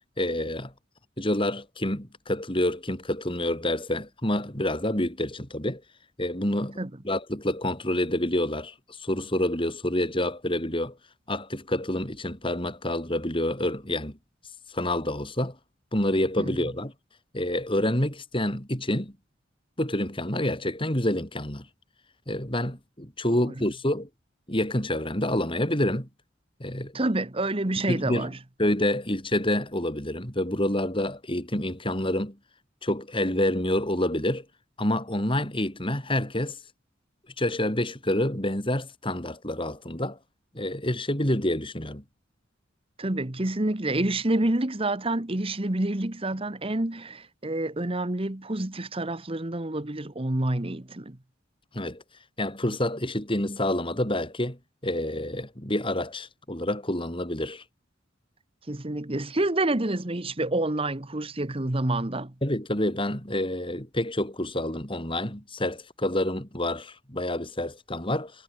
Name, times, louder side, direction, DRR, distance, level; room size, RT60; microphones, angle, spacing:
voice 1, 0.2-0.7 1.2-5.8 6.2-6.8 7.0-11.0 11.3-14.2 14.7-15.6 15.9-16.9 17.3-19.1 19.8-21.7 22.3-24.1 24.5-26.1 26.6-26.9 27.9-28.3 28.6-32.4 32.8-34.5 34.8-36.6 37.4-40.2 40.5-42.0 51.7-52.0 52.4-54.6 54.8-57.6 62.4-68.3, left 1 dB, 25° left, 5.4 m, -28 dB
voice 2, 26.9-28.3 43.0-51.2 58.7-62.3, right 2 dB, 30° right, 1.3 m, -28 dB
head